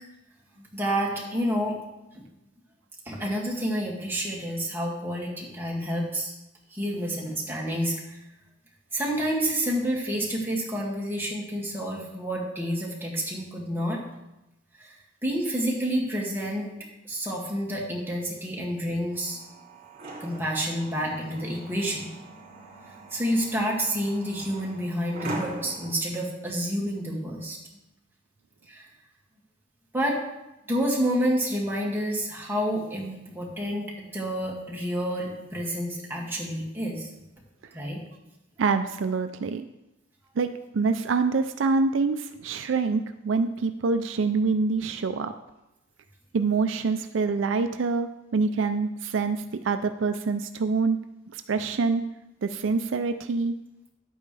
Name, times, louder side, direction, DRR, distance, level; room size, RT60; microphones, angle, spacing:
voice 1, 0.6-1.8 2.1-2.2 3.1-6.3 6.7-8.2 8.9-14.0 14.8-15.0 15.2-16.7 17.0-19.4 20.2-22.1 23.1-27.6 28.7-28.9 29.9-30.2 30.7-37.1 37.7-38.0, equal, 10° right, -4 dB, 2.2 m, -29 dB
sound 1, 19.1-25.9, right 2 dB, 50° right, 2.7 m, -41 dB
voice 2, 38.6-39.7 40.4-40.5 40.7-45.3 46.3-51.0 51.3-52.0 52.4-53.5, right 4 dB, 70° right, 9 dB, 0.4 m, -26 dB
11.0 x 8.7 x 3.3 m, 0.95 s
head